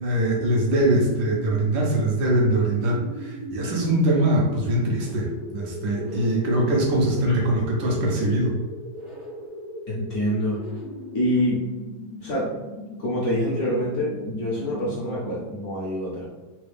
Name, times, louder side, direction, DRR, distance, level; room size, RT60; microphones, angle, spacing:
voice 1, 0.0-8.5, right 1 dB, 70° right, -1 dB, 1.3 m, -22 dB
sound 1, 0.8-15.7, equal, 40° right, 0.3 m, -39 dB
voice 2, 9.9-10.6 11.1-11.6 12.2-12.5 13.0-16.2, equal, 60° left, -7 dB, 1.0 m, -26 dB
3.9 x 2.3 x 3.2 m, 1.2 s
omnidirectional pair, 2.2 m